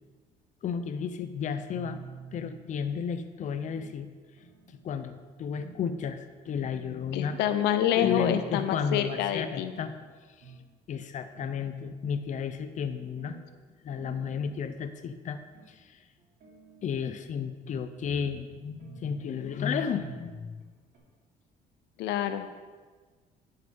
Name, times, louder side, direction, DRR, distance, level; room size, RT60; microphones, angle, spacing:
voice 1, 0.6-2.0 2.3-4.1 4.7-7.4 7.9-9.9 10.9-13.4 13.8-15.4 15.7-16.0 16.8-20.6, left 7 dB, 45° left, 9 dB, 0.7 m, -33 dB
sound 1, 1.7-2.7 3.2-3.9 4.4-5.0 5.6-5.8 6.2-6.3 6.5-7.5 8.0-8.6 9.0-10.0 10.4-10.6 11.0-11.1 11.3-12.2 12.8-13.4 14.0-14.6 15.2-15.7 16.2-17.2 17.6-18.2 18.8-19.4 20.0-20.3 20.6-20.7 20.9-21.0, right 5 dB, 65° right, 2.9 m, -49 dB
voice 2, 7.1-9.7 22.0-22.4, left 10 dB, 85° left, 9 dB, 0.7 m, -27 dB
11.0 x 5.8 x 5.4 m, 1.4 s
cardioid pair, 110°, 17 cm